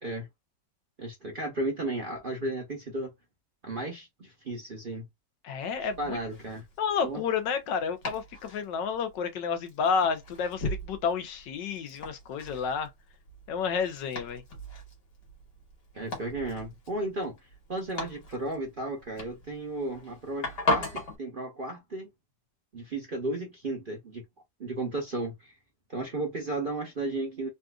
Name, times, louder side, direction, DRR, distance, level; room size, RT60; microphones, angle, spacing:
voice 1, 1.0-3.1 3.6-5.1 5.8-6.7 7.0-7.2 15.9-17.4 17.7-22.1 22.7-24.2 24.6-25.5 25.9-27.5, right 2 dB, 45° right, 0.7 m, -34 dB
voice 2, 5.4-6.2 6.8-12.9 13.5-14.4, left 6 dB, 85° left, 1.4 m, -30 dB
Domestic sounds home sounds, 5.6-21.2, left 1 dB, 65° left, 2.1 m, -38 dB
4.0 x 2.4 x 2.3 m
omnidirectional pair, 1.9 m